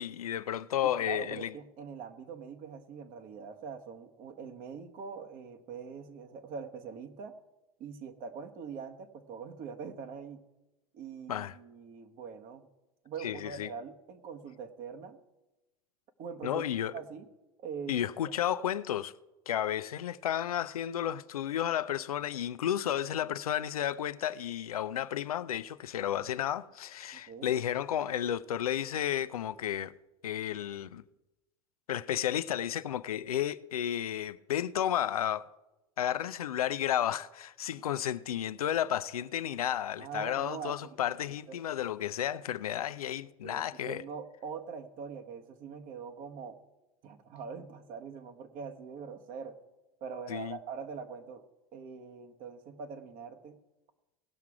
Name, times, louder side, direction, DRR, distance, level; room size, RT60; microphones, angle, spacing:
voice 1, 0.0-1.5 11.3-11.5 13.2-13.7 16.4-17.0 17.9-19.1 19.5-29.9 30.2-31.0 31.9-35.5 36.0-44.0 50.3-50.6, left 10 dB, 90° left, 0.5 m, -32 dB
voice 2, 0.8-7.3 7.8-10.4 10.9-12.7 13.0-15.2 16.2-16.6 16.9-17.3 17.6-18.0 27.1-27.5 40.0-40.9 41.3-41.6 43.4-46.6 47.0-49.6 50.0-51.5 51.7-53.6, right 6 dB, 50° right, 1.3 m, -43 dB
18.0 x 5.9 x 4.8 m
hypercardioid pair, 90°, 18 cm